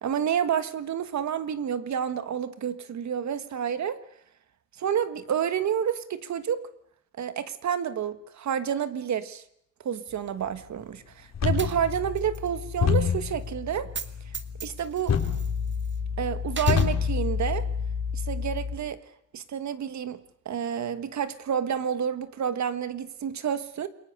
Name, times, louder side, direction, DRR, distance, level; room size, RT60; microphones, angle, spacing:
voice 1, 0.0-4.0 4.8-6.6 7.2-9.4 9.8-13.9 14.6-15.1 16.2-17.7 18.1-19.0 19.3-20.2 20.4-23.9, right 8 dB, 65° right, 12 dB, 1.6 m, -29 dB
sound 1, 11.3-18.8, left 6 dB, 60° left, 3.6 m, -28 dB
Coin (dropping), 11.6-12.5 12.7-12.8 13.8-14.1 14.3-16.0 16.5-16.9, right 6 dB, 40° right, 1.7 m, -38 dB
28.5 x 22.0 x 6.8 m, 0.73 s
wide cardioid pair, 140°, 30 cm